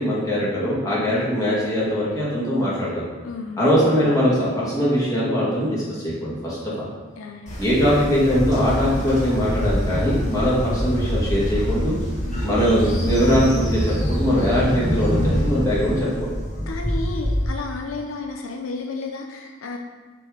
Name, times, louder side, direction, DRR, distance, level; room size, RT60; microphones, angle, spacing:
voice 1, 0.0-3.0 3.6-6.9 7.6-12.0 12.4-16.3, equal, 15° left, -7 dB, 1.9 m, -21 dB
voice 2, 3.2-3.7 7.2-7.6 10.4-10.5 12.2-12.4 16.7-19.8, left 3 dB, 80° left, 2 dB, 0.6 m, -32 dB
Train, 7.5-17.5, equal, 35° left, 1.6 m, -25 dB
6.7 x 3.9 x 5.0 m, 1.4 s
head